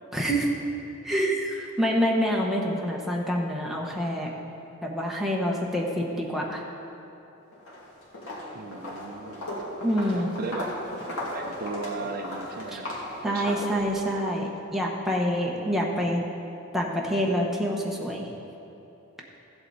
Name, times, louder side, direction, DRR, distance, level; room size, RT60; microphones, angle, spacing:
voice 1, 0.1-0.5 1.0-4.3 4.8-6.6 9.8-10.3 12.7-12.8 13.2-16.2 16.7-18.3, equal, ahead, -2 dB, 1.0 m, -27 dB
Walk footsteps, 7.5-7.8 8.1-14.2, left 1 dB, 75° left, 2.3 m, -36 dB
voice 2, 8.5-9.5 10.1-10.7 11.3-12.9 13.2-13.7 15.5-16.3, right 3 dB, 45° right, 3 dB, 0.6 m, -37 dB
14.0 x 8.0 x 4.1 m, 2.9 s
head